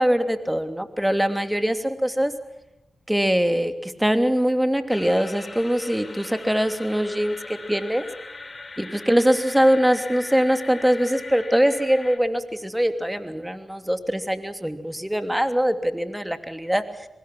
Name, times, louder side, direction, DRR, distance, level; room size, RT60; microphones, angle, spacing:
voice 1, 0.0-2.3 3.1-8.1 8.8-17.1, equal, 5° right, 8 dB, 2.9 m, -22 dB
sound 1, 4.9-12.2, left 3 dB, 40° left, 4.0 m, -40 dB
24.0 x 20.5 x 6.2 m, 0.96 s
cardioid pair, 45°, 0 cm